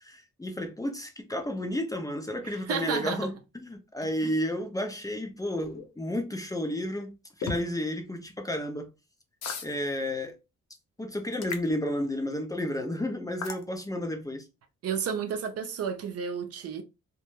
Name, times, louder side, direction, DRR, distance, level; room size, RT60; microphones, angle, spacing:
voice 1, 0.0-8.9 9.6-10.3 11.0-14.4, left 1 dB, 10° left, 0.5 m, -32 dB
voice 2, 2.4-3.3 4.2-4.3 14.8-16.8, right 7 dB, 55° right, 0.5 m, -32 dB
sound 1, 5.6-5.8 7.4-7.6 9.4-9.7 11.4-11.7 13.4-13.6, left 5 dB, 60° left, 0.7 m, -34 dB
2.2 x 2.0 x 3.0 m
cardioid pair, 90°, 30 cm